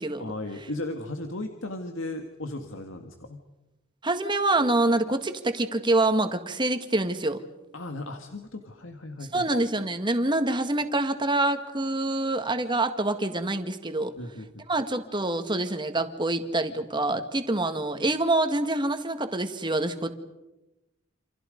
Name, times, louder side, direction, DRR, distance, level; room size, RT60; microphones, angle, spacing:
voice 1, 0.2-3.4 7.7-9.4 14.2-14.6, left 2 dB, 75° left, 5 dB, 1.9 m, -36 dB
voice 2, 4.0-7.4 9.3-14.2 14.7-20.1, right 2 dB, 25° right, 7 dB, 1.9 m, -26 dB
28.5 x 28.0 x 5.3 m, 1.0 s
head